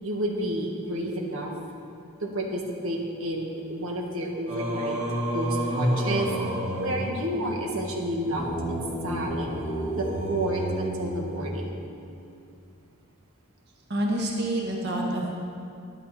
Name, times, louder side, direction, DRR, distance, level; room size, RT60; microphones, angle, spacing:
voice 1, 0.0-1.5 2.2-5.0 5.3-6.3 6.8-9.5 9.9-11.8, right 1 dB, 75° right, 1 dB, 1.5 m, -30 dB
Singing, 4.5-11.8, equal, 35° right, 1.9 m, -30 dB
voice 2, 13.9-15.4, right 1 dB, 50° right, -2 dB, 1.7 m, -27 dB
12.0 x 11.0 x 4.2 m, 2.5 s
head